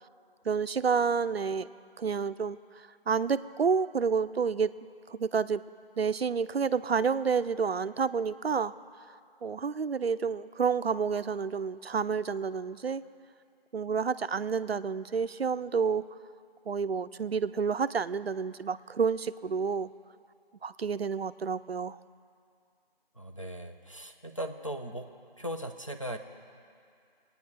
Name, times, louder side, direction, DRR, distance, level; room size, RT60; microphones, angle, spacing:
voice 1, 0.4-1.7 2.0-4.7 5.1-5.6 6.0-8.7 9.4-13.0 13.7-16.0 16.7-19.9 20.6-22.0, right 5 dB, 80° right, 14 dB, 0.6 m, -29 dB
voice 2, 23.2-25.1 25.4-26.2, equal, 30° left, 4 dB, 0.7 m, -38 dB
23.0 x 9.5 x 5.0 m, 2.3 s
figure-of-eight pair, 180°, 30 cm